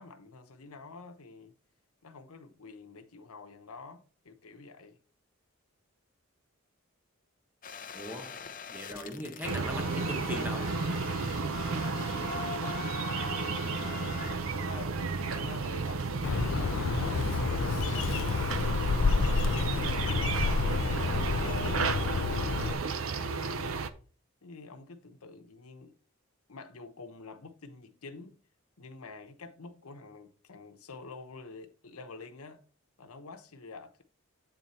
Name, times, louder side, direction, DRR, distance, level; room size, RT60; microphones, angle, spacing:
voice 1, 0.0-1.5 2.0-5.0 11.4-19.5 20.0-23.8 24.4-25.9 26.5-28.4 28.8-32.6 33.0-34.0, left 3 dB, 90° left, 1.0 m, -48 dB
sound 1, 7.6-14.4, left 5 dB, 40° left, 0.7 m, -42 dB
voice 2, 7.9-8.4 8.7-10.7, left 1 dB, 10° right, 0.8 m, -39 dB
sound 2, 9.4-23.9, right 4 dB, 70° right, 0.6 m, -33 dB
Bird, 16.2-22.7, left 5 dB, 65° left, 0.4 m, -29 dB
9.0 x 3.9 x 4.3 m
head